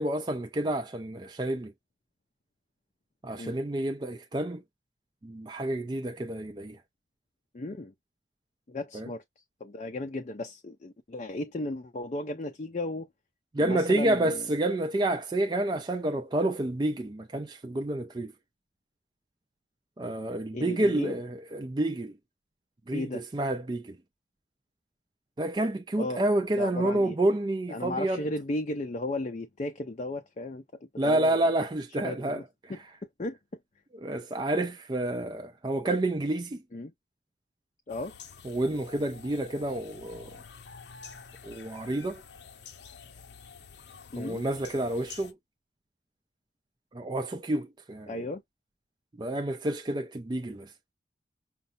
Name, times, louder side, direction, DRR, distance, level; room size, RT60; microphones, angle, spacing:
voice 1, 0.0-1.7 3.2-4.6 5.2-6.8 8.9-9.1 13.5-18.3 20.0-22.1 22.9-24.0 25.4-28.2 31.0-32.4 34.0-36.6 38.4-40.4 41.4-42.2 44.2-45.4 46.9-48.2 49.2-50.7, right 1 dB, 25° right, 0.4 m, -29 dB
voice 2, 7.5-7.9 8.7-9.2 9.6-13.1 13.6-14.4 20.5-21.2 22.9-23.2 26.0-26.2 26.6-27.1 27.7-30.6 31.0-31.4 32.0-32.4 32.7-32.8 33.2-33.4 36.7-36.9 37.9-38.1 44.1-44.4 48.1-48.4, left 2 dB, 40° left, 0.5 m, -35 dB
sound 1, 37.9-45.3, left 6 dB, 70° left, 0.7 m, -48 dB
5.5 x 2.0 x 2.4 m
head